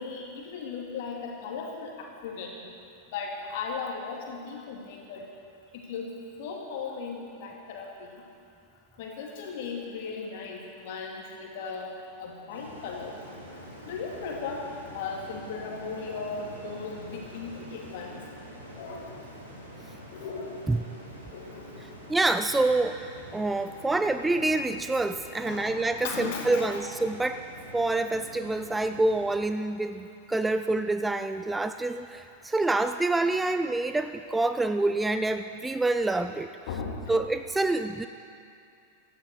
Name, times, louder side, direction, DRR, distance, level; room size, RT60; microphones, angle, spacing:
voice 1, 0.0-2.6 3.1-5.2 5.7-6.1 6.4-8.2 9.0-13.2 13.8-14.6 14.9-18.2 18.7-19.2 20.1-20.7 21.3-21.9 25.4-25.8 26.0-26.9 36.7-37.0, left 5 dB, 50° left, 0 dB, 2.6 m, -37 dB
sound 1, 12.5-29.3, equal, 85° right, 3.1 m, -46 dB
voice 2, 22.1-23.0 23.3-27.4 27.7-36.5 37.1-38.1, right 2 dB, 10° right, 9 dB, 0.4 m, -27 dB
16.0 x 13.5 x 4.8 m, 2.5 s
figure-of-eight pair, 90°, 0 cm